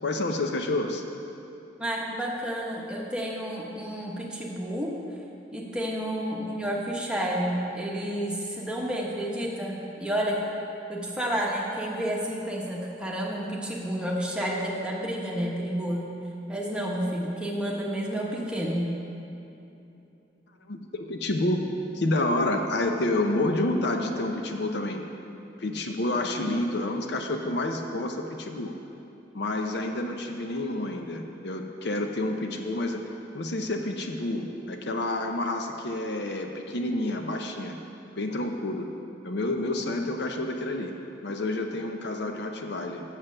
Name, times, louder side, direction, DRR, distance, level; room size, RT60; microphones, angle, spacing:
voice 1, 0.0-1.0 20.7-21.6 21.9-25.0 25.6-28.7 29.3-33.0 33.3-37.8 38.2-38.9 39.2-40.9 41.2-43.0, left 2 dB, 60° left, 4 dB, 0.7 m, -29 dB
voice 2, 1.8-4.9 5.5-10.4 10.9-16.1 16.5-18.9, equal, 5° right, -3 dB, 1.1 m, -30 dB
7.9 x 7.4 x 6.6 m, 2.9 s
head